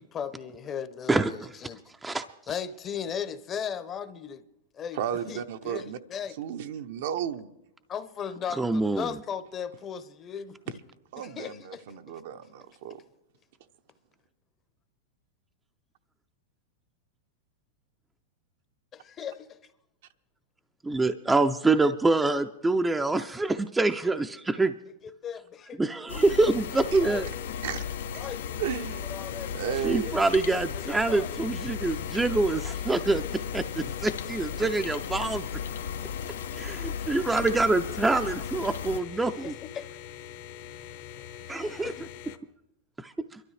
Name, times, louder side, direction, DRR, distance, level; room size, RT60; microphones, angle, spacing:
voice 1, 0.0-1.8 2.5-4.4 4.7-5.0 5.3-6.4 7.9-10.7 11.2-11.8 18.9-19.6 25.0-25.9 27.0-27.5 28.1-30.1 30.5-31.3 39.1-39.9 41.8-42.1, left 8 dB, 30° left, 0.7 m, -37 dB
voice 2, 1.1-1.5 2.0-2.2 8.6-9.1 20.8-24.7 25.8-27.3 29.8-35.4 36.5-39.5 41.5-41.9 43.0-43.4, right 3 dB, 10° right, 0.4 m, -26 dB
voice 3, 4.9-6.0 6.4-7.5 11.1-13.0 26.9-27.0 27.6-27.8 28.6-29.1 29.5-30.1, right 9 dB, 65° right, 0.7 m, -33 dB
sound 1, 26.1-39.0, left 7 dB, 85° left, 0.6 m, -36 dB
sound 2, 26.2-42.4, left 10 dB, 60° left, 0.9 m, -44 dB
24.0 x 12.5 x 3.2 m
hypercardioid pair, 130°, 0 cm